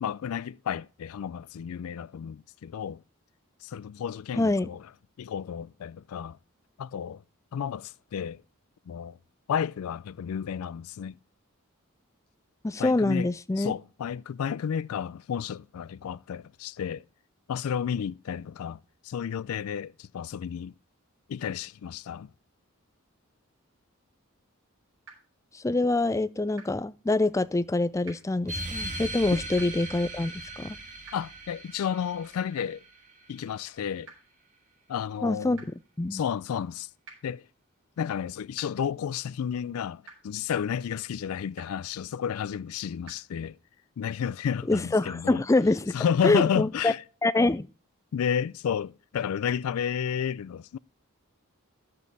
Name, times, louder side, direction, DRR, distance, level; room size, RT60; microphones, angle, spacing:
voice 1, 0.0-3.0 3.6-4.9 5.2-6.4 6.8-7.2 7.5-8.4 8.9-9.2 9.5-11.2 12.8-13.3 13.6-17.0 17.5-20.7 21.3-22.3 29.3-29.4 31.1-32.8 33.3-34.1 34.9-35.6 36.1-36.9 37.2-37.4 38.0-43.6 44.0-45.4 45.9-47.0 48.1-50.8, left 8 dB, 85° left, 0.3 m, -31 dB
voice 2, 4.4-4.7 12.6-13.7 25.5-30.8 35.2-35.6 36.0-36.2 44.7-46.0 46.2-46.9 47.2-47.7, left 2 dB, 15° left, 0.3 m, -25 dB
sound 1, 25.0-25.1 26.5-26.6 28.0-28.1 29.5-29.6 31.0-31.1 32.5-32.6 34.0-34.1 35.5-35.6 37.0-37.1 38.5-38.6 40.0-40.1 41.5-41.6 43.0-43.1, right 5 dB, 65° right, 5.3 m, -46 dB
sound 2, 28.5-33.5, right 1 dB, 35° right, 2.3 m, -39 dB
11.0 x 7.5 x 3.9 m
head